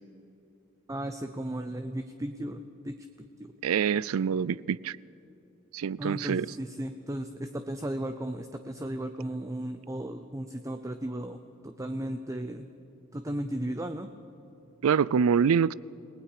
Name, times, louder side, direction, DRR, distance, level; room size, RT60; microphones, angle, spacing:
voice 1, 0.9-2.9 3.4-3.5 6.0-11.4 11.6-12.7 13.1-14.1, right 1 dB, 15° right, 0.6 m, -35 dB
voice 2, 3.6-5.0 5.7-6.5 14.8-15.7, right 7 dB, 90° right, 0.4 m, -25 dB
28.5 x 19.0 x 4.9 m
head